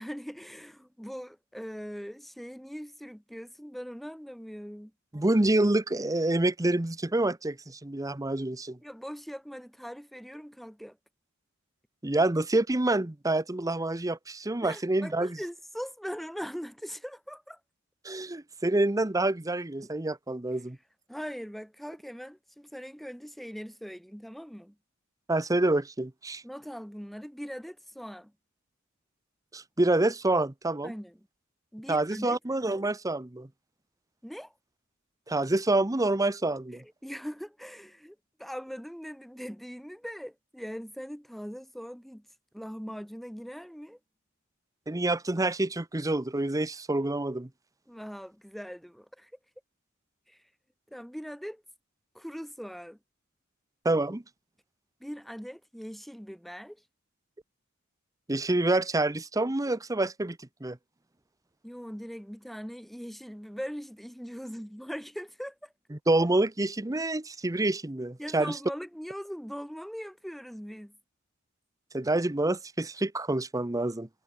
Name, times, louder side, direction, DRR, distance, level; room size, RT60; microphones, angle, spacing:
voice 1, 0.0-4.9 8.8-11.0 14.6-17.6 21.1-24.8 26.4-28.3 30.8-31.2 31.7-32.4 34.2-34.5 36.7-42.3 42.5-44.0 47.9-49.3 50.3-50.4 50.9-51.6 52.1-53.0 55.0-56.8 61.6-65.7 68.2-71.0, equal, ahead, 2.3 m, -41 dB
voice 2, 5.1-8.8 12.0-15.4 18.0-20.8 25.3-26.4 29.5-30.9 31.9-33.5 35.3-36.8 44.9-47.5 53.8-54.2 58.3-60.8 65.9-68.6 71.9-74.1, right 2 dB, 15° right, 0.8 m, -27 dB
head